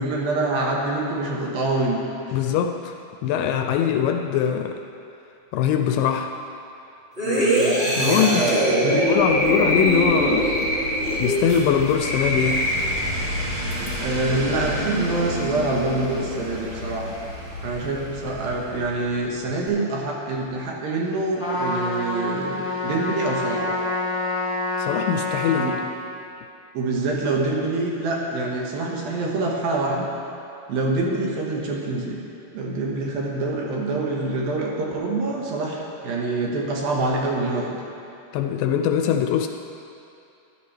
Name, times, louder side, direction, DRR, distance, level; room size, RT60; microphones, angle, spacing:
voice 1, 0.0-2.4 7.2-9.1 14.0-17.1 17.6-23.6 25.6-25.7 26.7-30.1 30.7-32.2 32.5-37.8, right 2 dB, 80° right, -2 dB, 3.1 m, -25 dB
voice 2, 2.3-3.0 3.2-4.8 5.5-6.3 8.0-8.5 8.8-10.7 11.2-12.7 24.8-25.7 38.3-39.5, left 8 dB, 80° left, 5 dB, 2.0 m, -22 dB
sound 1, 7.2-13.3 13.7-13.9, equal, 15° right, 1.9 m, -22 dB
sound 2, 9.1-19.4 19.7-19.8, left 1 dB, 50° right, 1.1 m, -32 dB
Trumpet, 21.4-25.8, left 2 dB, 10° left, 1.0 m, -27 dB
13.5 x 11.0 x 3.3 m, 2.7 s
omnidirectional pair, 4.2 m